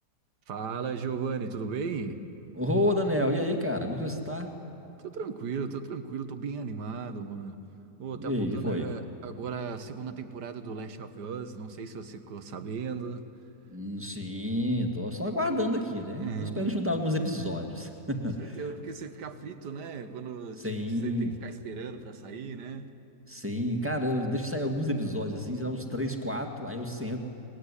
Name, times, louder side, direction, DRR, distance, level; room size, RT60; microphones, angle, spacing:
voice 1, 0.5-2.2 5.0-7.6 8.0-13.2 16.2-16.8 18.4-22.9, right 5 dB, 80° right, 9 dB, 1.8 m, -36 dB
voice 2, 2.6-4.5 8.1-8.9 13.7-18.6 20.6-21.3 23.3-27.2, left 1 dB, 10° right, 2 dB, 2.0 m, -30 dB
23.5 x 20.5 x 9.9 m, 2.8 s
omnidirectional pair, 1.8 m